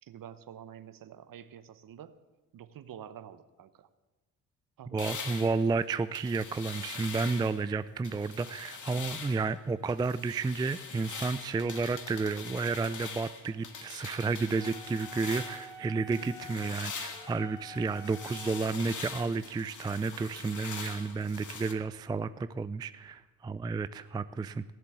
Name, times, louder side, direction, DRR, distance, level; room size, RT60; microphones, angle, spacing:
voice 1, 0.0-2.2 2.5-3.9 4.8-5.4, right 9 dB, 50° right, 14 dB, 1.0 m, -48 dB
voice 2, 4.9-24.6, right 4 dB, 10° right, 14 dB, 0.3 m, -31 dB
sound 1, 5.0-7.6 8.0-9.5 9.9-15.8 16.1-21.7, left 5 dB, 45° left, 1.8 m, -43 dB
Wind instrument woodwind instrument, 14.6-18.8, equal, 10° left, 2.7 m, -48 dB
16.5 x 7.5 x 8.2 m, 1.2 s
hypercardioid pair, 50°, 44 cm